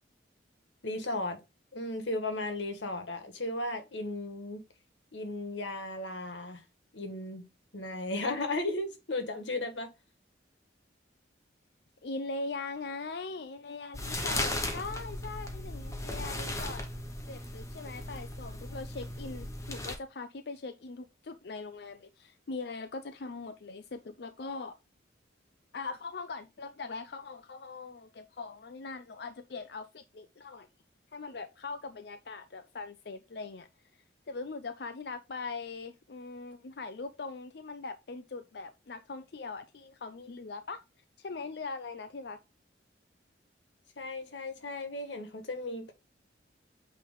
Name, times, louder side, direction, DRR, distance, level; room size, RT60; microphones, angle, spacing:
voice 1, 0.8-1.4 1.7-4.6 5.1-6.6 6.9-7.5 7.7-9.9 44.0-45.9, left 2 dB, 80° left, 1.6 m, -35 dB
voice 2, 12.0-16.8 17.3-24.7 25.7-30.7 31.1-33.7 34.3-40.8 41.2-42.4, left 3 dB, 60° left, 0.5 m, -41 dB
sound 1, 13.9-20.0, left 1 dB, 15° left, 1.0 m, -36 dB
8.5 x 3.4 x 3.8 m
head